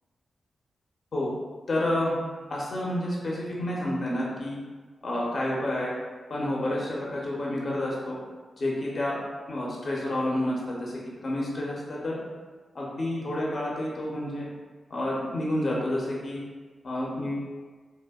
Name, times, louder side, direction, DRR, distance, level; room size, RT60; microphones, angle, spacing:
voice 1, 1.7-2.1 2.5-4.6 5.0-5.9 6.3-8.2 8.6-9.1 9.5-10.9 11.2-12.2 12.7-14.5 14.9-16.4 16.8-17.5, left 1 dB, 55° left, -5 dB, 0.5 m, -29 dB
2.7 x 2.1 x 2.2 m, 1.4 s
supercardioid pair, 45°, 0 cm